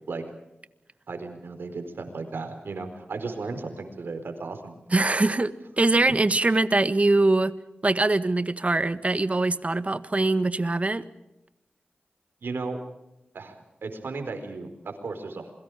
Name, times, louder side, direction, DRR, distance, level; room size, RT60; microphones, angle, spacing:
voice 1, 1.1-4.7 12.4-12.8 13.3-15.5, right 3 dB, 80° right, 6 dB, 4.4 m, -35 dB
voice 2, 4.9-7.5 7.8-11.0, right 2 dB, 40° right, 12 dB, 1.5 m, -23 dB
28.0 x 22.5 x 5.0 m, 0.94 s
cardioid pair, 50°, 4 cm